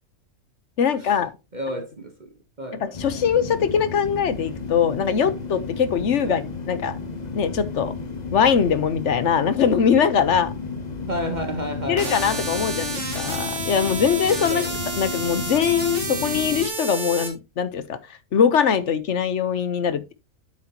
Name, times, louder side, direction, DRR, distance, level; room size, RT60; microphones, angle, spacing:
voice 1, 0.8-1.3 2.8-6.4 6.7-7.0 7.4-7.9 8.3-10.5 11.9-14.7 15.0-18.0 18.3-20.1, left 7 dB, 65° left, 1.2 m, -22 dB
voice 2, 1.5-2.3 2.6-2.9 6.2-6.5 11.1-12.7 14.5-14.7, equal, 35° right, 1.2 m, -31 dB
sound 1, 2.9-16.7, left 4 dB, 35° left, 1.2 m, -33 dB
sound 2, 12.0-17.3, right 2 dB, 60° right, 2.8 m, -30 dB
8.8 x 7.9 x 2.9 m
omnidirectional pair, 1.4 m